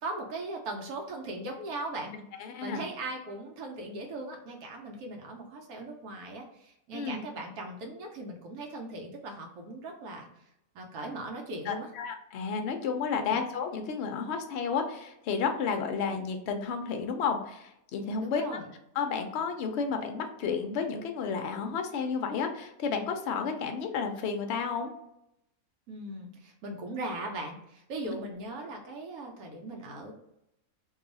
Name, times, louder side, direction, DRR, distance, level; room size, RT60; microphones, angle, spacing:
voice 1, 0.0-2.1 2.6-10.3 10.7-11.9 13.1-13.4 18.2-18.7 25.9-30.1, right 2 dB, 90° right, 1 dB, 1.1 m, -39 dB
voice 2, 2.4-2.8 6.9-7.2 11.7-18.6 19.0-24.9, left 5 dB, 65° left, 5 dB, 0.7 m, -32 dB
2.7 x 2.3 x 3.8 m, 0.82 s
omnidirectional pair, 1.5 m